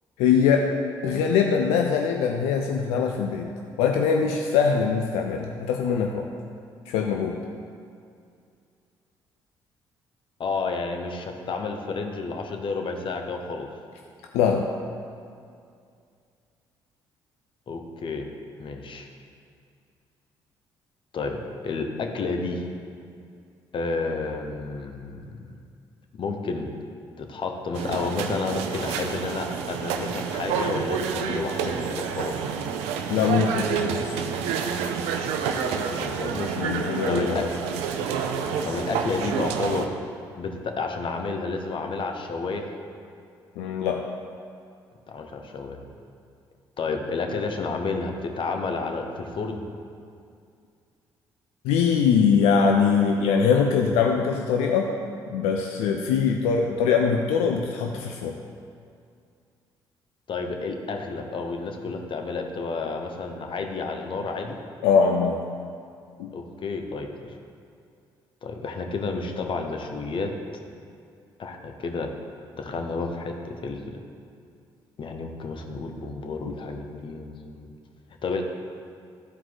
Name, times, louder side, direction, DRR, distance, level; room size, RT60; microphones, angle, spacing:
voice 1, 0.2-0.7 1.0-3.5 3.8-6.3 6.9-7.4 14.3-14.7 33.1-34.2 36.6-37.5 43.6-44.0 51.6-54.9 55.3-58.4 64.8-65.4 66.2-66.3 76.5-76.6, left 6 dB, 85° left, 3 dB, 0.4 m, -22 dB
voice 2, 10.4-13.7 17.7-18.3 18.6-19.1 21.1-22.7 23.7-25.5 26.1-26.7 27.2-32.4 35.7-36.5 37.1-37.4 38.6-39.9 40.4-42.7 45.1-45.8 46.8-49.6 60.3-64.6 66.3-67.1 68.4-70.3 71.4-72.1 72.6-74.0 75.0-77.7 78.2-78.4, left 4 dB, 55° left, 4 dB, 1.0 m, -31 dB
sound 1, 27.7-39.9, right 6 dB, 85° right, 0.5 m, -28 dB
11.5 x 4.6 x 3.9 m, 2.4 s
supercardioid pair, 55°, 10 cm